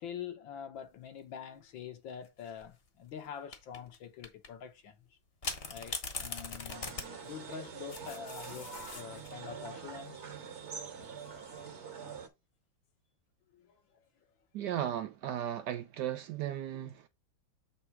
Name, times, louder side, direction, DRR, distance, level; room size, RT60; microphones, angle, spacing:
voice 1, 0.0-5.2 5.7-7.0 7.2-10.2 13.5-14.0, left 8 dB, 70° left, 1.7 m, -45 dB
sound 1, 2.2-2.7 3.5-4.0 4.2-4.5 5.4-9.4 11.0-11.5, left 4 dB, 35° left, 1.1 m, -41 dB
sound 2, 6.7-12.3, right 6 dB, 40° right, 1.2 m, -45 dB
voice 2, 14.5-17.1, right 11 dB, 75° right, 1.0 m, -36 dB
7.8 x 3.3 x 4.7 m
omnidirectional pair, 2.2 m